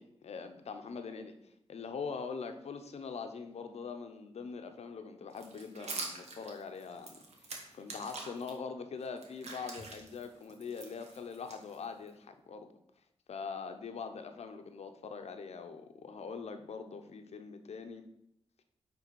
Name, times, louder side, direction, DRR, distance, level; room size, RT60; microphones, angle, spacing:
voice 1, 0.0-1.3 1.7-12.7 13.3-18.0, left 5 dB, 75° left, 7 dB, 0.8 m, -43 dB
sound 1, 5.3-8.5 9.0-12.1, right 3 dB, 80° right, 1.3 m, -45 dB
9.1 x 3.5 x 4.6 m, 0.78 s
cardioid pair, 60°, 11 cm